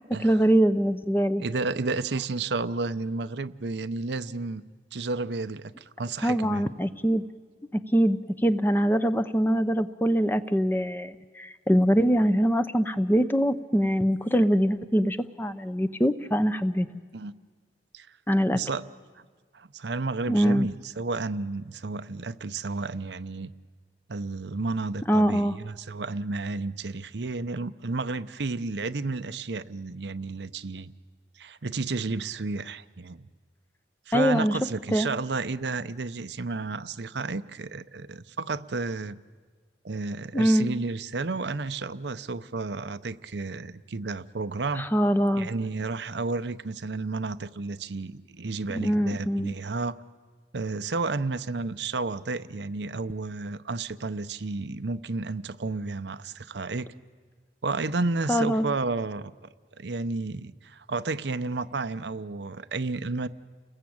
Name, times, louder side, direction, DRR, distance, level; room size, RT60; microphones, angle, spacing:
voice 1, 0.2-1.4 6.2-7.2 7.7-16.9 18.3-18.6 20.3-20.7 25.1-25.5 34.1-34.6 34.9-35.1 40.3-40.7 44.8-45.5 48.7-49.5 58.3-58.6, equal, 10° left, 11 dB, 0.7 m, -23 dB
voice 2, 1.4-4.6 4.9-6.6 17.1-17.3 17.9-18.1 18.5-18.8 19.5-23.5 24.1-30.9 31.4-33.3 34.1-39.2 39.8-44.9 45.4-50.0 50.5-56.9 57.6-59.3 59.8-63.3, right 3 dB, 75° right, 12 dB, 0.7 m, -32 dB
30.0 x 21.0 x 8.7 m, 1.5 s
head